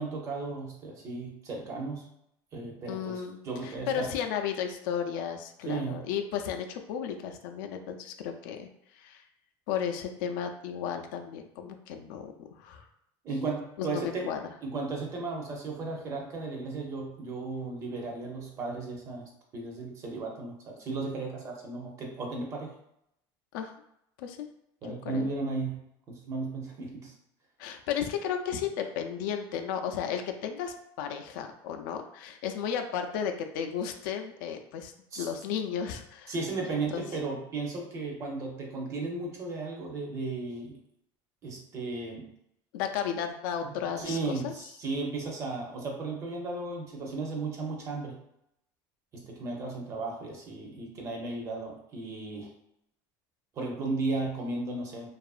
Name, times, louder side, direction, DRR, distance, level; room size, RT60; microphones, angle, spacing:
voice 1, 0.0-2.1 2.5-4.1 5.7-6.0 13.2-14.3 14.6-22.7 24.8-25.8 26.1-27.1 35.1-35.3 36.3-40.8 41.4-42.3 43.6-48.2 49.1-52.5 53.5-55.1, right 3 dB, 30° right, 0 dB, 0.5 m, -35 dB
voice 2, 2.9-8.7 8.9-9.2 9.7-12.9 13.8-14.4 23.5-23.7 24.2-24.5 24.8-25.3 27.6-36.3 36.6-37.0 42.7-44.2 44.4-44.5, left 8 dB, 85° left, 5 dB, 0.4 m, -34 dB
2.8 x 2.4 x 2.4 m, 0.77 s
cardioid pair, 165°, 11 cm